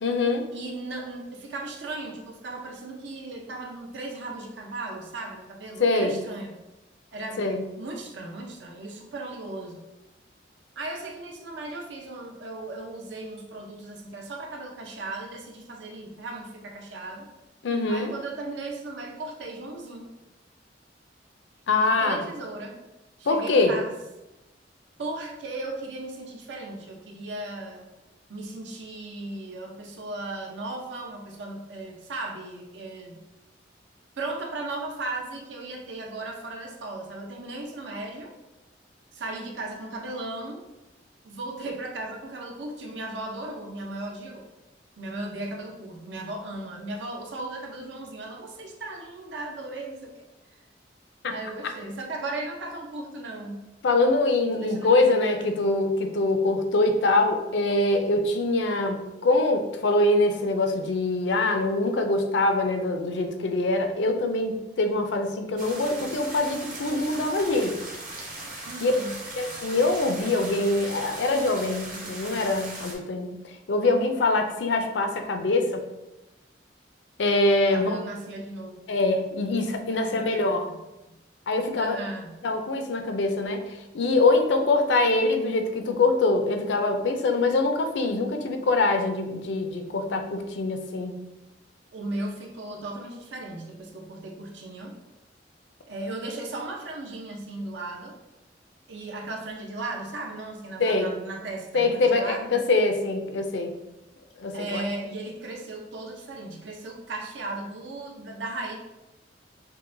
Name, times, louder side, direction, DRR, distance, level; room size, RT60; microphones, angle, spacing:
voice 1, 0.0-0.5 5.8-6.2 7.4-7.6 17.6-18.1 21.7-22.2 23.3-23.7 51.2-51.3 53.8-67.8 68.8-68.9 69.4-73.3 73.7-75.8 77.2-78.0 78.9-80.7 81.5-82.0 82.4-83.6 83.9-91.2 100.8-101.1 101.7-103.7 104.4-104.9, left 2 dB, 75° left, 5 dB, 0.5 m, -24 dB
voice 2, 0.5-6.5 7.1-9.9 10.8-17.3 17.9-20.1 21.8-22.8 23.2-23.9 25.0-27.9 28.3-33.2 34.2-38.3 39.1-40.7 41.2-44.4 45.0-50.3 51.3-53.6 54.5-55.8 68.6-69.2 77.7-78.9 79.9-80.8 81.8-82.4 91.9-94.9 95.9-98.2 98.9-102.6 104.5-108.8, right 2 dB, 75° right, 1 dB, 0.6 m, -36 dB
sound 1, 65.6-72.9, right 2 dB, 45° right, 0.8 m, -39 dB
5.5 x 2.2 x 2.6 m, 0.98 s
head